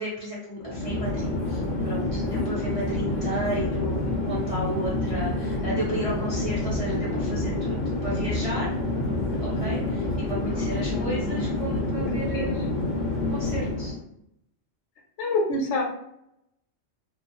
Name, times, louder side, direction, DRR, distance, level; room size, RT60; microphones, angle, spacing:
voice 1, 0.0-8.7 9.4-12.6 13.3-13.9, right 1 dB, 45° right, -6 dB, 0.4 m, -33 dB
Chatter / Fixed-wing aircraft airplane, 0.6-14.0, left 2 dB, 50° left, 0.6 m, -28 dB
voice 2, 10.8-11.4 12.0-12.5 15.2-15.8, left 2 dB, 70° left, 1 dB, 0.9 m, -28 dB
2.3 x 2.3 x 2.9 m, 0.76 s
omnidirectional pair, 1.3 m